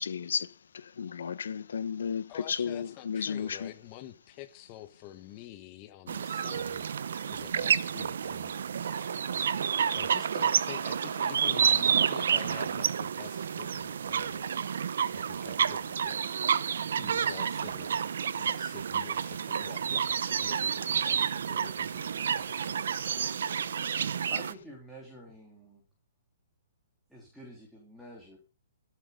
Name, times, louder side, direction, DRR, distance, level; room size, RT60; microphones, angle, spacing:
voice 1, 0.0-3.7 23.5-23.6, left 7 dB, 80° left, 1.1 m, -34 dB
voice 2, 2.3-9.5 9.9-14.7 15.1-16.2 16.9-17.9 18.4-22.8, left 13 dB, 30° left, 1.2 m, -48 dB
sound 1, 6.1-24.5, right 7 dB, 70° right, 0.8 m, -30 dB
voice 3, 24.3-25.8 27.1-28.4, equal, ahead, 3.5 m, -48 dB
14.5 x 7.9 x 5.3 m
hypercardioid pair, 160°, 0 cm